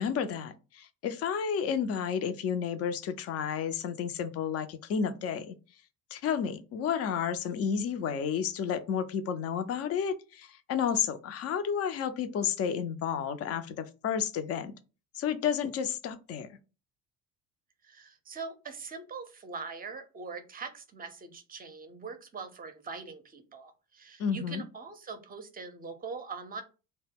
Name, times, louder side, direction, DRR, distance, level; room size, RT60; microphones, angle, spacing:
voice 1, 0.0-5.5 6.1-14.7 15.1-16.5 24.2-24.6, left 7 dB, 35° left, 0.4 m, -31 dB
voice 2, 17.8-26.6, right 4 dB, 20° right, 0.6 m, -42 dB
2.1 x 2.0 x 3.4 m
hypercardioid pair, 55°, 47 cm